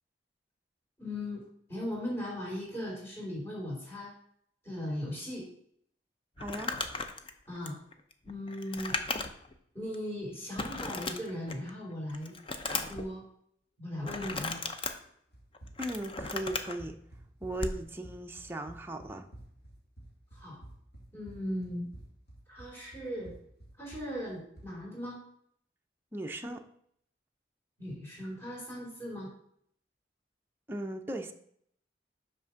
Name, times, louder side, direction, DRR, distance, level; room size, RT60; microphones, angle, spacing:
voice 1, 1.0-1.4 1.7-4.1 4.6-5.5 7.5-7.8 8.2-9.0 9.7-12.3 12.7-13.2 13.8-14.6 20.3-20.6 21.1-21.9 22.5-23.3 23.8-25.2 27.8-29.3, left 1 dB, 15° left, -4 dB, 2.9 m, -38 dB
Crumpling crinkling, 6.4-9.5 9.9-10.0 10.6-11.7 12.1-13.1 14.0-14.9 15.5-16.8 17.5-17.8, left 3 dB, 30° left, 0.6 m, -36 dB
voice 2, 6.4-6.7 15.8-16.9 17.4-19.3 26.1-26.6 30.7-31.3, right 1 dB, 15° right, 4 dB, 0.6 m, -37 dB
Run, 15.3-24.8, right 1 dB, 65° left, 2.1 m, -51 dB
6.1 x 5.1 x 5.7 m, 0.68 s
head